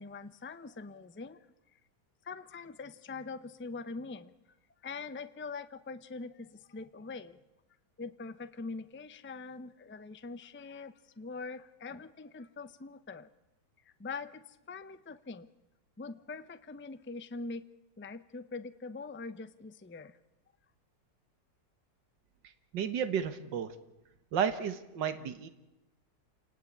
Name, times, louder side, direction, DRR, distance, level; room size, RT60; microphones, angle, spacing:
voice 1, 0.0-1.4 2.2-4.3 4.8-7.4 8.0-13.3 14.0-15.5 16.0-17.6 18.0-20.1, left 4 dB, 15° left, 12 dB, 0.4 m, -43 dB
voice 2, 22.7-23.8 24.3-25.5, right 7 dB, 85° right, 10 dB, 2.0 m, -32 dB
28.0 x 18.5 x 8.7 m, 0.97 s
omnidirectional pair, 1.9 m